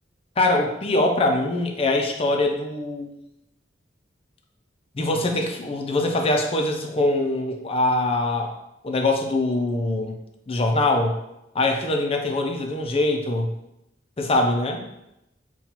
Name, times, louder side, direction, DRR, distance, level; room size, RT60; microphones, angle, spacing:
voice 1, 0.4-3.1 4.9-8.5 8.8-10.2 10.5-11.2 11.5-13.5 14.2-14.8, left 2 dB, 30° left, 3 dB, 0.5 m, -23 dB
5.6 x 2.3 x 2.9 m, 0.86 s
head